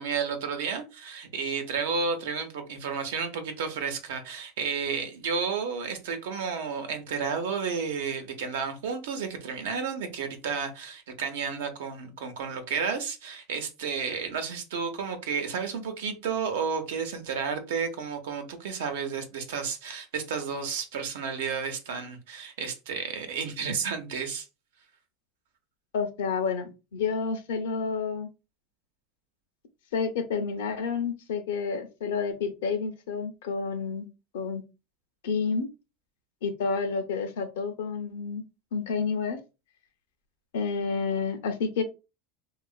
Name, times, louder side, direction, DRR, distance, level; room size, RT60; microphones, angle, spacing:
voice 1, 0.0-24.5, right 5 dB, 85° right, 0.6 m, -32 dB
voice 2, 25.9-28.3 29.9-34.1 34.3-34.6 35.2-35.7 36.4-38.4 38.7-39.4 40.5-41.8, left 5 dB, 85° left, 0.5 m, -29 dB
2.8 x 2.4 x 2.3 m
supercardioid pair, 115°, 0 cm